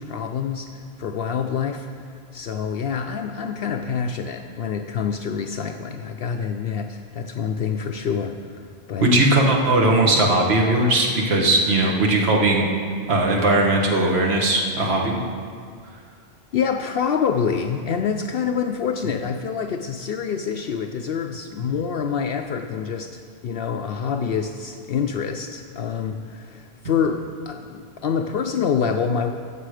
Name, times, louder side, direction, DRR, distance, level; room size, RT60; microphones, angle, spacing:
voice 1, 0.0-1.9 2.3-8.4 8.9-9.4 16.5-29.4, left 6 dB, 65° left, 5 dB, 0.8 m, -26 dB
voice 2, 9.0-12.6 13.1-15.2, right 2 dB, 70° right, -1 dB, 1.6 m, -19 dB
15.5 x 7.6 x 4.9 m, 2.1 s
omnidirectional pair, 1.1 m